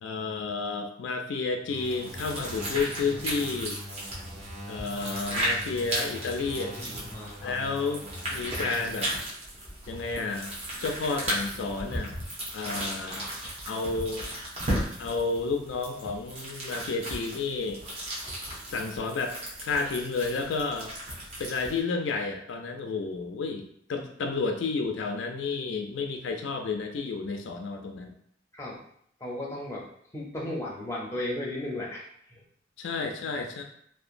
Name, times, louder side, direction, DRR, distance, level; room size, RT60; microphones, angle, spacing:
voice 1, 0.0-3.8 4.7-6.7 7.4-9.1 9.9-10.5 10.8-12.1 12.5-13.2 13.6-14.3 15.0-17.8 18.7-19.3 19.6-20.9 21.4-28.1 32.8-33.6, left 4 dB, 75° left, 3 dB, 0.3 m, -31 dB
sound 1, 1.6-9.0, equal, 90° right, 1.2 m, -43 dB
sound 2, 1.8-21.8, right 1 dB, 35° right, 0.7 m, -35 dB
voice 2, 6.6-7.5 12.6-13.3 28.5-28.8 29.2-29.9 30.1-32.4, left 1 dB, 15° left, -3 dB, 0.5 m, -36 dB
2.8 x 2.1 x 2.5 m, 0.67 s
head